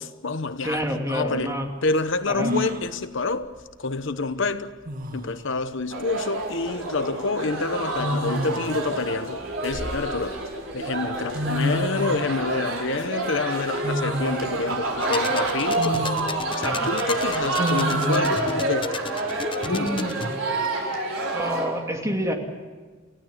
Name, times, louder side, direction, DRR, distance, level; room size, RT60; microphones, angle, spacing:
voice 1, 0.0-0.8 1.1-1.6 1.8-3.5 3.8-4.7 5.1-10.4 10.7-16.0 16.6-18.9 19.6-20.0, left 3 dB, 60° left, 1.0 m, -28 dB
voice 2, 0.6-1.7 2.3-2.5 16.6-16.9 19.7-20.5 21.3-22.3, equal, 15° right, 2.6 m, -28 dB
sound 1, 2.4-2.9 4.4-4.5 4.9-5.3 6.7-6.9 8.0-8.7 9.4-10.4 11.1-11.2 11.3-12.2 13.8-14.4 14.9-15.0 15.8-16.3 17.6-18.2, equal, 45° right, 2.1 m, -28 dB
sound 2, 5.9-21.6, right 2 dB, 70° right, 5.1 m, -28 dB
sound 3, 15.0-20.3, left 3 dB, 25° left, 0.9 m, -33 dB
28.5 x 16.0 x 8.5 m
head